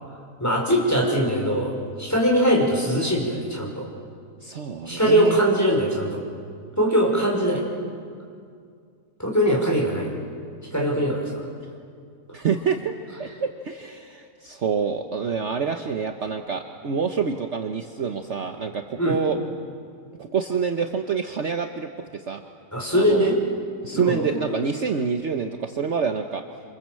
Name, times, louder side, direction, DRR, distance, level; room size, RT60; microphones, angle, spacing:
voice 1, 0.4-3.8 4.9-6.2 6.8-7.6 9.2-10.1 10.7-11.5 19.0-19.2 22.7-23.4 23.9-24.6, equal, 10° left, -1 dB, 5.5 m, -22 dB
voice 2, 4.4-5.4 12.3-12.9 13.2-19.4 20.2-22.4 22.9-23.3 23.8-26.4, right 6 dB, 50° right, 5 dB, 1.3 m, -27 dB
27.5 x 27.0 x 7.7 m, 2.3 s
omnidirectional pair, 1.6 m